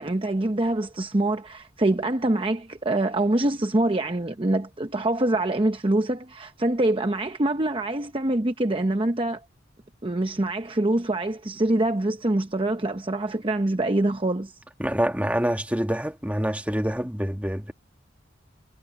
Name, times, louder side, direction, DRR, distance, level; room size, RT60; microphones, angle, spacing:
voice 1, 0.0-9.4 10.0-14.5, right 1 dB, 25° right, 0.8 m, -25 dB
voice 2, 14.8-17.7, equal, 10° right, 1.7 m, -26 dB
head